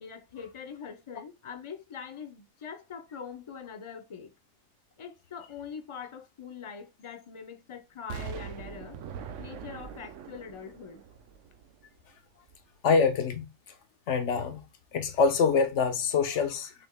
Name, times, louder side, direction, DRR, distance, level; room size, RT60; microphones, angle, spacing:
voice 1, 0.0-4.3 5.0-9.0 9.4-11.0, left 6 dB, 40° left, 0.5 m, -43 dB
Explosion, 8.1-12.0 12.5-12.6, right 7 dB, 85° right, 0.9 m, -42 dB
voice 2, 12.8-13.5 14.1-14.6 14.9-16.7, left 5 dB, 75° left, 1.1 m, -25 dB
5.9 x 3.3 x 2.2 m
omnidirectional pair, 1.2 m